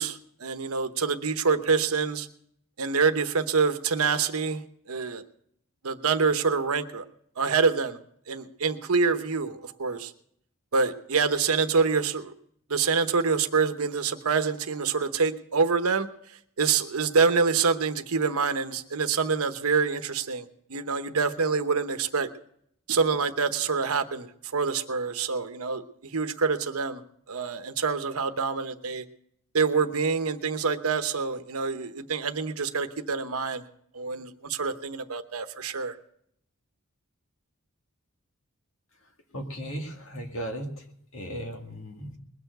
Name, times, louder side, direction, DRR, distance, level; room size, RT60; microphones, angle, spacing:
voice 1, 0.0-2.3 2.8-5.2 5.8-7.0 7.4-8.0 8.3-10.1 10.7-12.3 12.7-22.3 22.9-24.3 24.5-27.0 27.3-29.0 29.5-33.6 33.9-36.0, right 5 dB, 80° right, 8 dB, 1.0 m, -26 dB
voice 2, 39.3-40.9 41.1-42.1, equal, 65° left, 3 dB, 2.1 m, -36 dB
21.0 x 6.9 x 7.8 m, 0.69 s
head